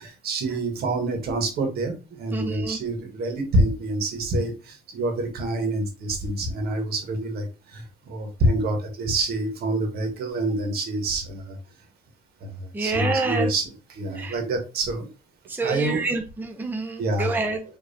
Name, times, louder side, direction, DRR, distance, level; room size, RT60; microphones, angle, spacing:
voice 1, 0.0-1.9 2.2-11.5 12.4-12.5 12.8-13.6 13.9-15.1 15.6-16.0 17.0-17.3, right 2 dB, 65° right, 4 dB, 1.7 m, -26 dB
voice 2, 2.3-2.8 12.7-13.5 14.1-14.4 15.5-17.6, right 3 dB, 10° right, 4 dB, 0.7 m, -27 dB
5.3 x 3.2 x 2.8 m, 0.31 s
cardioid pair, 110°, 17 cm